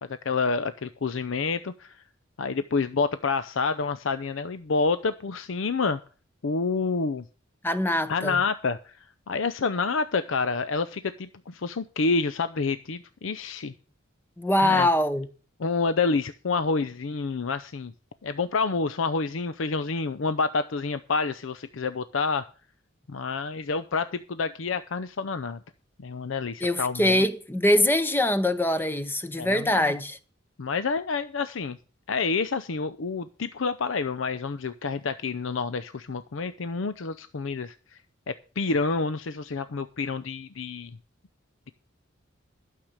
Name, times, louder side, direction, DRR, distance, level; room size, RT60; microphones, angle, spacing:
voice 1, 0.2-2.0 2.4-6.0 6.4-7.2 8.1-9.0 9.3-13.7 14.6-14.9 15.6-17.9 18.2-22.5 23.1-25.6 26.0-27.2 29.4-29.9 30.6-31.8 32.1-37.8 38.3-40.9, left 4 dB, 70° left, 0.6 m, -28 dB
voice 2, 7.6-8.4 14.4-15.3 26.6-30.2, left 1 dB, 10° left, 0.8 m, -23 dB
12.0 x 6.6 x 7.2 m
head